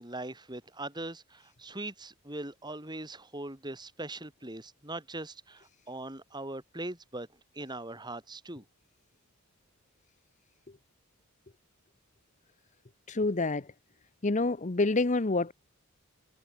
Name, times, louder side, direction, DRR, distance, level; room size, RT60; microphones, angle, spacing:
voice 1, 0.0-7.3 7.5-8.6, right 2 dB, 20° right, 5.8 m, -41 dB
voice 2, 13.1-13.7 14.2-15.5, left 3 dB, 35° left, 0.8 m, -27 dB
head